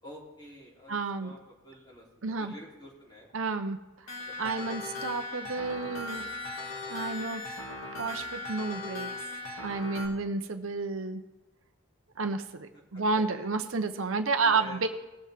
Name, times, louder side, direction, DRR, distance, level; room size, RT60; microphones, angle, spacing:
voice 1, 0.0-3.4 4.3-4.8 12.7-13.0 14.4-14.9, equal, 20° left, -5 dB, 3.8 m, -49 dB
voice 2, 0.9-1.3 2.2-2.5 3.3-3.8 4.1-4.2 4.4-6.3 6.9-7.4 8.0-9.1 9.6-11.2 12.2-14.9, right 4 dB, 70° right, 8 dB, 0.8 m, -31 dB
sound 1, 4.1-10.1, left 2 dB, 80° left, 2.2 m, -38 dB
19.0 x 7.5 x 3.6 m, 1.1 s
head